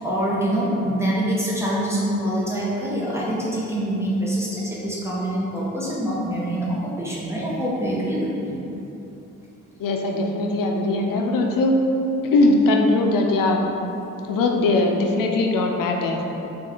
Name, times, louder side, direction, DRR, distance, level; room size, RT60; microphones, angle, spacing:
voice 1, 0.0-8.6, right 1 dB, 10° right, -7 dB, 0.9 m, -25 dB
voice 2, 9.8-11.8 12.3-13.6 14.2-16.5, left 2 dB, 80° left, 2 dB, 0.5 m, -20 dB
3.6 x 2.5 x 4.3 m, 2.9 s
cardioid pair, 75°, 33 cm